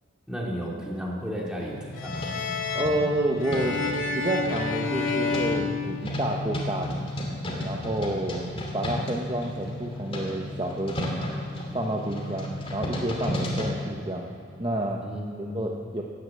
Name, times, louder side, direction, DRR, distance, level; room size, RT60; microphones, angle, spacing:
voice 1, 0.3-2.2 15.0-15.5, equal, 5° right, -4 dB, 2.8 m, -33 dB
sound 1, 1.6-13.7, left 1 dB, 25° left, 2.6 m, -33 dB
sound 2, 2.0-6.6, left 4 dB, 80° left, 2.1 m, -30 dB
voice 2, 2.7-3.8 4.1-7.0 7.6-8.4 8.7-11.2 11.7-14.3 14.6-15.0 15.5-16.0, right 1 dB, 25° right, 0 dB, 1.0 m, -29 dB
18.0 x 9.8 x 7.7 m, 2.5 s
head